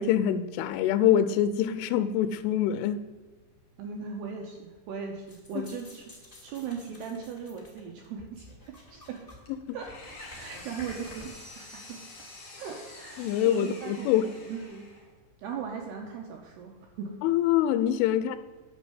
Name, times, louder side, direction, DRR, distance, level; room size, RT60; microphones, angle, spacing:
voice 1, 0.0-3.0 13.2-14.3 17.2-18.4, left 10 dB, 80° left, 3.0 m, -25 dB
voice 2, 3.8-6.2 6.4-9.3 9.7-10.0 10.4-12.1 12.6-14.9 15.4-17.2, right 6 dB, 80° right, 2.5 m, -39 dB
sound 1, 5.3-8.1 8.3-9.4 9.6-11.2, left 1 dB, 15° left, 1.6 m, -49 dB
Engine, 9.5-15.2, left 2 dB, 40° left, 3.0 m, -47 dB
11.0 x 6.3 x 7.9 m
omnidirectional pair, 5.8 m